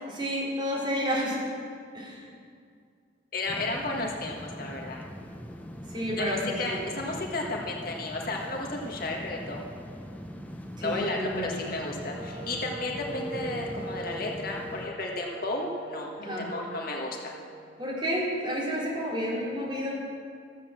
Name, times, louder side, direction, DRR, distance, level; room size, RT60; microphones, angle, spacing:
voice 1, 0.1-1.4 1.9-2.2 5.9-6.9 10.8-11.7 16.2-16.5 17.8-20.0, equal, 25° right, -6 dB, 3.9 m, -30 dB
voice 2, 3.3-5.1 6.2-9.7 10.8-17.3, left 2 dB, 55° left, 0 dB, 1.6 m, -33 dB
sound 1, 3.5-14.9, equal, 10° left, 0.9 m, -41 dB
Wind instrument woodwind instrument, 12.1-17.8, right 2 dB, 65° right, 2.6 m, -42 dB
13.5 x 8.5 x 7.3 m, 2.2 s
head